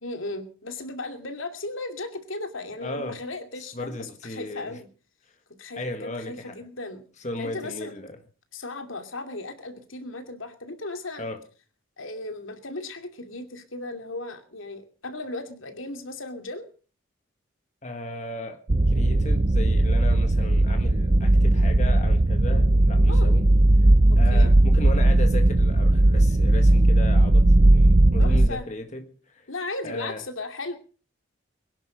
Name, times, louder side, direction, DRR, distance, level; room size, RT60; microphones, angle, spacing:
voice 1, 0.0-4.9 5.6-7.0 7.4-7.9 8.5-11.3 12.0-16.7 23.1-23.3 24.3-24.5 28.2-28.6 29.5-30.8, left 2 dB, 80° left, 2.6 m, -36 dB
voice 2, 2.8-3.2 3.6-4.8 5.7-6.6 7.2-8.2 11.2-11.4 17.8-18.6 18.9-23.5 24.2-29.5 29.8-30.2, left 1 dB, 35° left, 1.6 m, -36 dB
sound 1, 18.7-28.5, right 1 dB, 35° right, 0.7 m, -18 dB
22.5 x 11.0 x 5.1 m
head